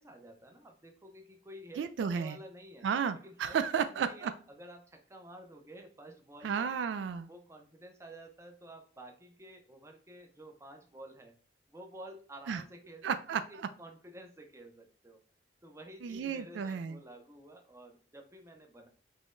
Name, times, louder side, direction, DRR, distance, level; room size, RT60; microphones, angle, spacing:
voice 1, 0.0-2.9 3.2-6.8 7.3-11.4 11.7-13.1 13.5-15.2 15.6-18.9, right 1 dB, 15° right, 3 dB, 0.5 m, -51 dB
voice 2, 1.8-2.4 2.8-4.3 6.4-7.3 12.5-12.6 13.0-13.7 16.0-17.0, right 6 dB, 75° right, 11 dB, 0.3 m, -33 dB
3.8 x 3.0 x 2.5 m, 0.40 s
head